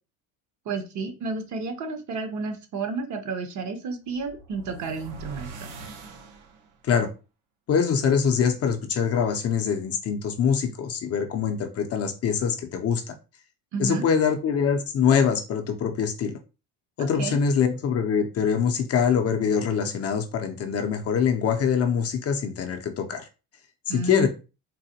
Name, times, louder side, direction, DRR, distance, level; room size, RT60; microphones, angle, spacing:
voice 1, 0.7-5.7 13.7-14.0 17.2-17.4 23.9-24.3, right 4 dB, 45° right, 6 dB, 0.8 m, -31 dB
sound 1, 4.0-6.9, right 3 dB, 80° right, 0.9 m, -43 dB
voice 2, 7.7-13.1 13.8-16.4 17.0-23.3 23.9-24.3, left 7 dB, 40° left, 5 dB, 0.5 m, -24 dB
3.8 x 2.1 x 2.8 m, 0.31 s
cardioid pair, 115°, 40 cm